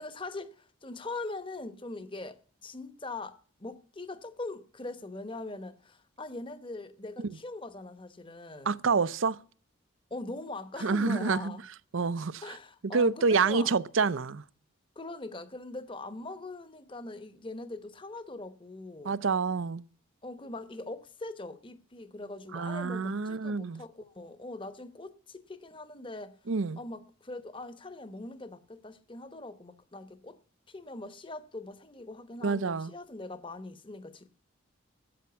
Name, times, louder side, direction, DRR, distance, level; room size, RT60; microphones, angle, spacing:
voice 1, 0.0-8.8 10.1-11.6 12.4-13.7 15.0-19.2 20.2-26.4 26.8-30.4 30.7-34.3, left 2 dB, 25° left, 1.0 m, -42 dB
voice 2, 8.7-9.4 10.8-11.5 11.9-12.4 12.9-14.4 19.0-19.8 22.5-23.8 26.5-26.8 32.4-32.9, right 4 dB, 70° right, 0.6 m, -27 dB
13.0 x 8.7 x 6.9 m
head